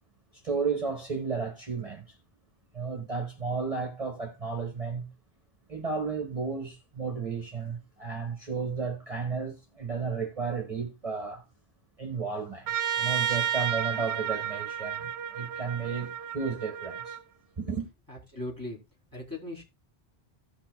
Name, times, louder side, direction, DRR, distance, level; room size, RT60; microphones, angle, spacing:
voice 1, 0.4-2.2 2.7-5.0 5.7-11.4 12.0-17.2 17.6-17.8, right 5 dB, 35° right, 1.4 m, -33 dB
Trumpet, 12.7-17.2, right 9 dB, 80° right, 0.9 m, -32 dB
voice 2, 18.1-18.8 19.1-19.6, left 1 dB, 20° left, 3.4 m, -38 dB
17.0 x 5.7 x 2.3 m
omnidirectional pair, 1.1 m